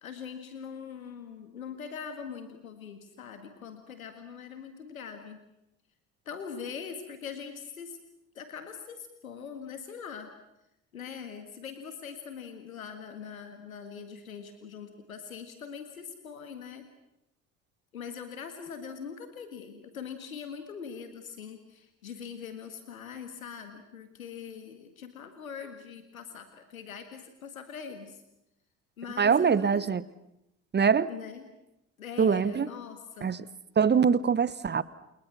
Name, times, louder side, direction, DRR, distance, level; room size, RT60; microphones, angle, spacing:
voice 1, 0.0-5.4 6.3-8.0 8.4-10.3 10.9-16.8 17.9-28.2 29.0-29.9 31.1-31.5 32.0-33.3, left 6 dB, 80° left, 8 dB, 1.9 m, -42 dB
voice 2, 29.2-30.0 30.7-31.1 32.2-32.7 33.2-33.4 33.8-34.8, right 6 dB, 25° right, 18 dB, 1.1 m, -23 dB
29.5 x 28.5 x 6.0 m, 0.86 s
figure-of-eight pair, 55°, 41 cm